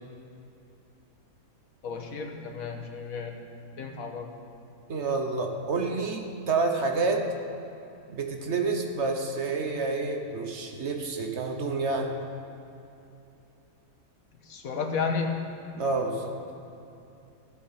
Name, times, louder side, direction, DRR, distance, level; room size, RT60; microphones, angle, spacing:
voice 1, 1.8-3.4 3.8-4.3 14.5-15.5, left 5 dB, 70° left, 3 dB, 1.6 m, -32 dB
voice 2, 4.9-7.3 8.1-12.1 15.7-16.3, right 3 dB, 50° right, 3 dB, 1.3 m, -28 dB
15.5 x 8.1 x 5.8 m, 2.7 s
omnidirectional pair, 1.5 m